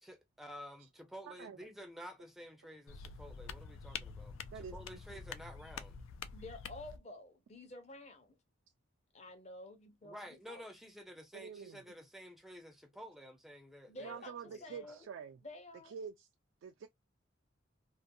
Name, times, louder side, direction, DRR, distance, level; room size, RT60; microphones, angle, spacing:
voice 1, 0.0-6.0 10.0-15.0, equal, ahead, 0.4 m, -51 dB
voice 2, 1.3-1.6 4.5-4.7 11.3-11.8 14.0-15.4 15.9-16.3 16.6-16.9, right 7 dB, 75° right, 0.3 m, -47 dB
sound 1, 2.9-7.0, left 6 dB, 85° left, 0.4 m, -47 dB
voice 3, 6.3-8.4 9.1-10.2 10.5-10.6 13.9-15.1 15.4-16.0, left 2 dB, 35° left, 0.6 m, -50 dB
2.5 x 2.2 x 2.6 m
head